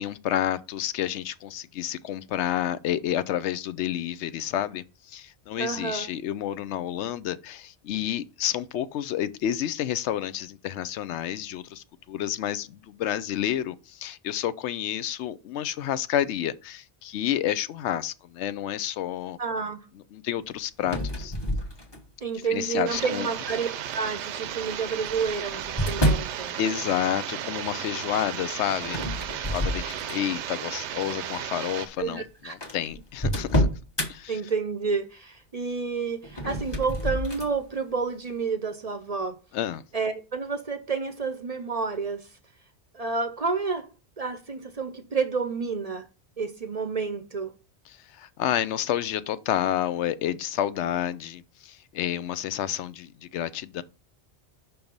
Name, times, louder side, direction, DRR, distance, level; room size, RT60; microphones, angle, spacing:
voice 1, 0.0-19.4 20.1-21.3 22.5-23.3 26.6-33.7 34.1-34.4 39.5-39.8 47.9-53.8, left 11 dB, 85° left, 0.9 m, -30 dB
voice 2, 5.6-6.1 19.4-19.8 22.2-23.7 23.9-26.5 32.0-32.6 34.3-39.4 39.9-42.3 42.9-43.9 44.2-46.0 46.4-47.5, right 5 dB, 40° right, 0.6 m, -30 dB
sound 1, 20.8-22.3 22.9-23.4 24.5-26.4 28.8-30.4 30.9-31.1 31.9-32.0 32.2-32.3 32.6-34.1 36.2-37.5, equal, 25° left, 1.2 m, -28 dB
sound 2, 22.9-31.9, right 10 dB, 80° right, 0.9 m, -34 dB
5.5 x 4.5 x 5.2 m
omnidirectional pair, 1.1 m